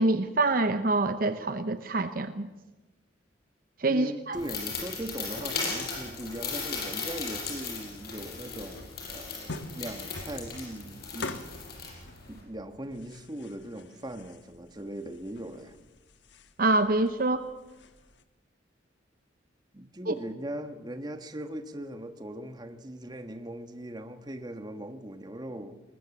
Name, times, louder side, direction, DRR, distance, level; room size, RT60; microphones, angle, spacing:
voice 1, 0.0-2.5 3.8-4.4 16.6-17.5 20.1-20.2, right 2 dB, 50° right, 11 dB, 0.8 m, -26 dB
voice 2, 3.9-11.4 11.9-15.8 19.7-25.8, right 1 dB, 25° right, 8 dB, 1.4 m, -40 dB
sound 1, 4.3-12.4, left 4 dB, 55° left, 6.3 m, -37 dB
sound 2, 8.2-18.2, left 2 dB, 80° left, 1.3 m, -46 dB
20.5 x 20.5 x 7.2 m, 1.1 s
head